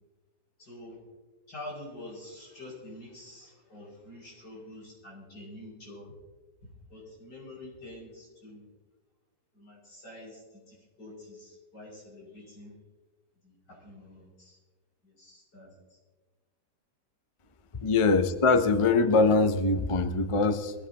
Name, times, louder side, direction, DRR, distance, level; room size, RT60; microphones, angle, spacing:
voice 1, 0.6-1.0 1.5-6.1 6.9-8.7 9.5-12.7 13.4-14.6 15.0-16.0, left 1 dB, 85° left, -5 dB, 6.7 m, -47 dB
voice 2, 17.8-20.7, left 3 dB, 45° left, 9 dB, 0.4 m, -23 dB
22.5 x 15.0 x 2.9 m, 1.3 s
omnidirectional pair, 1.8 m